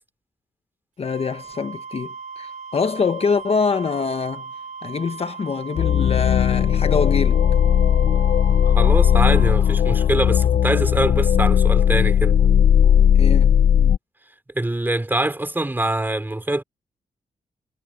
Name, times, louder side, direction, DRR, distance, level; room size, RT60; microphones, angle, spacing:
voice 1, 1.0-4.5 4.8-7.4 13.1-13.6, left 5 dB, 45° left, 1.2 m, -24 dB
Wind instrument woodwind instrument, 1.0-9.6, right 5 dB, 60° right, 6.1 m, -38 dB
sound 1, 5.8-14.0, left 9 dB, 60° left, 0.5 m, -17 dB
voice 2, 8.8-12.4 14.5-16.6, right 1 dB, 15° right, 3.2 m, -24 dB
cardioid pair, 95°, 14 cm